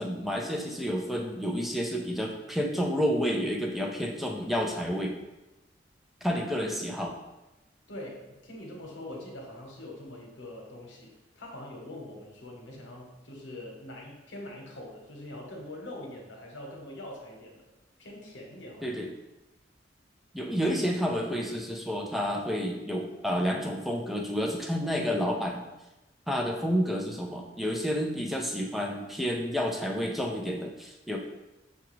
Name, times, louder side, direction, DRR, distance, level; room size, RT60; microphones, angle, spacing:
voice 1, 0.0-5.2 6.2-7.2 18.8-19.1 20.3-25.7 26.3-31.2, equal, ahead, 1 dB, 0.4 m, -30 dB
voice 2, 7.9-17.6 18.0-19.0, left 1 dB, 85° left, -1 dB, 1.0 m, -43 dB
5.8 x 2.3 x 3.1 m, 1.0 s
head